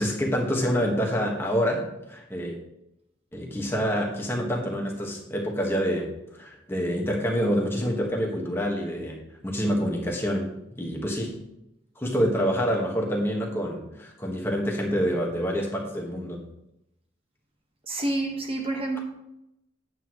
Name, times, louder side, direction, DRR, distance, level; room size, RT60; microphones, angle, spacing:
voice 1, 0.0-2.6 3.3-10.5 10.7-11.3 12.0-16.4, equal, 10° left, -1 dB, 1.6 m, -27 dB
voice 2, 17.9-19.0, right 2 dB, 30° right, 2 dB, 1.5 m, -28 dB
9.7 x 8.2 x 3.2 m, 0.86 s
head